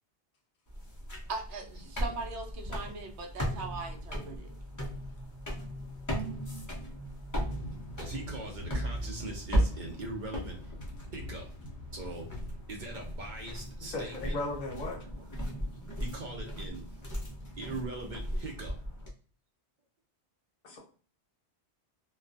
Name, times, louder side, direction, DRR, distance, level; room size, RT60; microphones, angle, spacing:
sound 1, 0.7-19.1, equal, 30° left, 0.4 m, -37 dB
voice 1, 1.3-4.5, right 4 dB, 80° right, 2 dB, 0.9 m, -40 dB
sound 2, 7.4-12.6, left 1 dB, 85° left, 0.9 m, -46 dB
voice 2, 8.0-10.7 11.1-11.5 11.9-12.3 12.7-14.7 15.0-15.3 16.0-16.8 17.6-18.7, right 2 dB, 55° right, 0 dB, 0.6 m, -41 dB
voice 3, 13.9-15.0 20.6-20.8, left 2 dB, 45° left, -1 dB, 0.8 m, -36 dB
2.2 x 2.2 x 2.5 m, 0.41 s
omnidirectional pair, 1.1 m